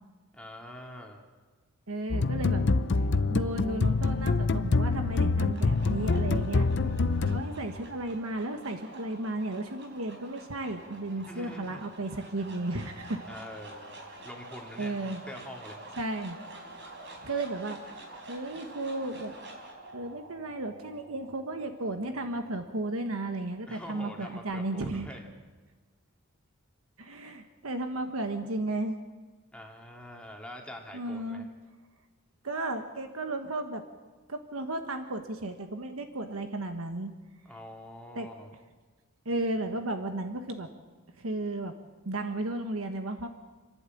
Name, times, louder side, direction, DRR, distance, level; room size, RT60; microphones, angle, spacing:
voice 1, 0.3-1.2 11.3-11.8 13.3-15.8 23.7-25.3 29.5-31.4 37.4-38.5, left 1 dB, 5° left, 0 dB, 2.5 m, -45 dB
voice 2, 1.9-2.6 3.3-6.7 7.3-13.2 14.8-15.2 16.0-16.4 17.2-17.8 18.3-19.3 19.9-25.1 27.0-29.0 30.9-31.5 32.4-33.8 34.3-37.1 38.1-38.3 39.2-40.7 41.2-41.7 42.0-43.3, right 2 dB, 85° right, 6 dB, 1.4 m, -34 dB
sound 1, 2.1-7.8, left 3 dB, 55° left, 0.6 m, -26 dB
sound 2, 5.3-23.5, right 2 dB, 55° right, 4.7 m, -48 dB
29.0 x 11.5 x 8.5 m, 1.4 s
head